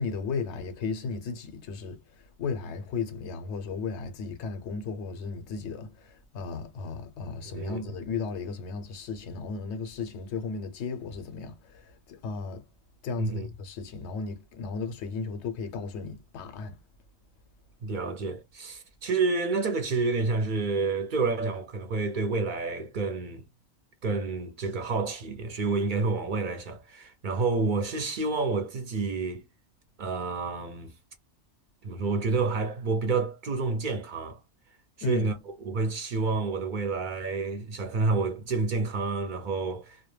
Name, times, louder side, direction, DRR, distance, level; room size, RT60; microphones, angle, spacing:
voice 1, 0.0-12.7 13.0-16.8 35.0-35.3, left 4 dB, 90° left, 0.9 m, -35 dB
voice 2, 17.8-23.4 24.0-29.4 30.0-30.9 31.8-34.4 35.1-35.3 35.7-40.0, right 3 dB, 55° right, 0.6 m, -29 dB
2.2 x 2.1 x 3.1 m
omnidirectional pair, 1.1 m